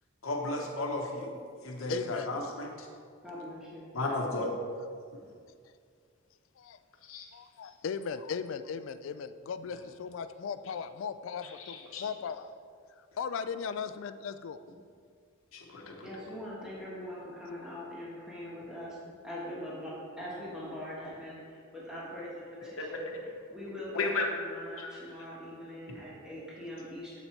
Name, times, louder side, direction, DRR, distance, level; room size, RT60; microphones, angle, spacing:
voice 1, 0.2-1.3 1.6-2.7 3.9-4.5 7.1-7.3 11.4-12.0 15.5-15.9 22.8-23.2 23.9-24.2 24.8-25.0 25.9-26.0, left 2 dB, 90° left, 1 dB, 1.0 m, -34 dB
voice 2, 1.9-2.3 6.6-6.8 7.3-12.5 13.2-14.6, left 6 dB, 70° left, 12 dB, 0.3 m, -37 dB
voice 3, 3.2-3.9 16.0-19.0 19.2-27.2, equal, 5° right, -8 dB, 1.3 m, -42 dB
7.9 x 4.3 x 4.4 m, 2.2 s
head